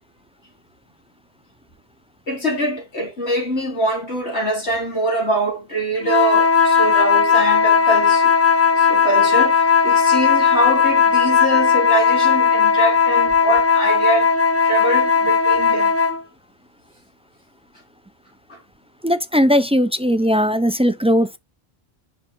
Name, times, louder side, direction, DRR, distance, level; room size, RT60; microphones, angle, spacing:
voice 1, 2.3-8.3 8.7-14.3 14.6-16.0 18.5-18.6, right 1 dB, 75° left, 4.5 m, -23 dB
sound 1, 6.0-16.2, left 6 dB, 15° left, 0.7 m, -16 dB
voice 2, 19.0-21.4, equal, 10° right, 0.4 m, -18 dB
7.5 x 5.9 x 3.8 m
omnidirectional pair, 1.1 m